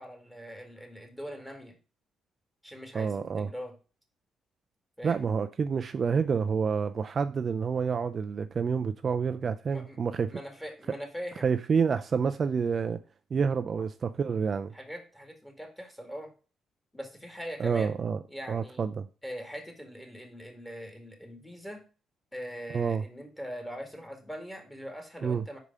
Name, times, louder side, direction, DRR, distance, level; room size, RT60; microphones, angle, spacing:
voice 1, 0.0-1.7 2.6-3.7 5.0-5.3 9.7-10.0 10.3-11.5 14.7-16.3 16.9-17.9 18.3-18.9 19.2-21.8 22.3-25.6, equal, 5° left, 2.0 m, -42 dB
voice 2, 2.9-3.5 5.0-10.4 11.4-13.0 13.3-14.7 17.6-18.2 18.5-19.1 22.7-23.0 25.2-25.4, right 6 dB, 45° right, 0.4 m, -28 dB
5.0 x 4.8 x 5.4 m
cardioid pair, 90°, 0 cm